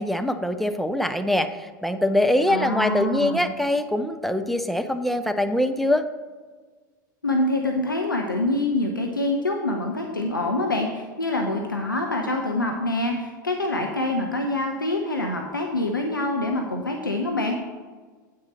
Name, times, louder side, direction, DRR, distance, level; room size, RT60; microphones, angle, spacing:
voice 1, 0.0-6.0, left 1 dB, ahead, 8 dB, 0.5 m, -23 dB
voice 2, 2.5-3.5 7.2-17.5, left 2 dB, 90° left, 2 dB, 0.8 m, -25 dB
8.7 x 6.2 x 4.2 m, 1.4 s
figure-of-eight pair, 85°, 11 cm